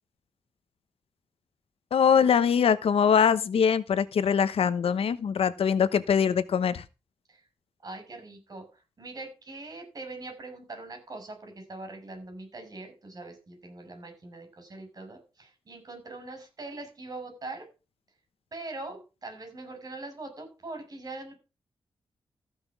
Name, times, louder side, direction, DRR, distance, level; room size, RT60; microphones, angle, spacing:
voice 1, 1.9-6.8, left 7 dB, 85° left, 1.0 m, -23 dB
voice 2, 7.8-17.7 18.5-21.4, right 2 dB, 40° right, 5.9 m, -42 dB
14.5 x 6.1 x 5.9 m
wide cardioid pair, 140°, 10 cm